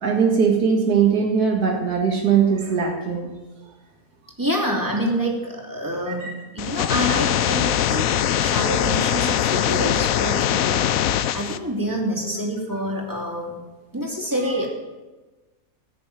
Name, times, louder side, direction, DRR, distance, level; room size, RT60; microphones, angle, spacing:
voice 1, 0.0-3.3 6.1-6.3, right 6 dB, 80° right, 0 dB, 2.2 m, -20 dB
voice 2, 4.4-13.6 13.9-14.7, equal, 10° right, -1 dB, 2.8 m, -27 dB
sound 1, 6.6-11.6, left 10 dB, 70° left, 1.0 m, -22 dB
16.5 x 6.7 x 9.0 m, 1.2 s
omnidirectional pair, 1.6 m